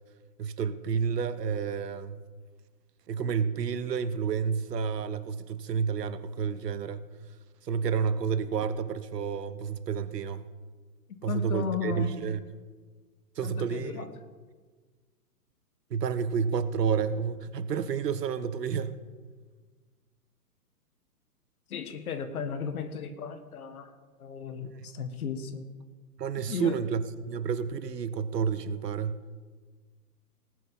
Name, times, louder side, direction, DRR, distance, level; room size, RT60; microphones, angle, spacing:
voice 1, 0.4-2.2 3.1-7.1 7.6-10.4 11.2-12.4 13.4-14.1 15.9-18.9 24.6-24.9 26.2-29.2, right 6 dB, 85° right, 13 dB, 1.1 m, -30 dB
voice 2, 11.3-12.1 13.4-14.1 21.7-23.9 24.2-25.7 26.5-26.8, left 6 dB, 65° left, 10 dB, 1.7 m, -35 dB
19.0 x 7.7 x 5.6 m, 1.4 s
hypercardioid pair, 155°, 47 cm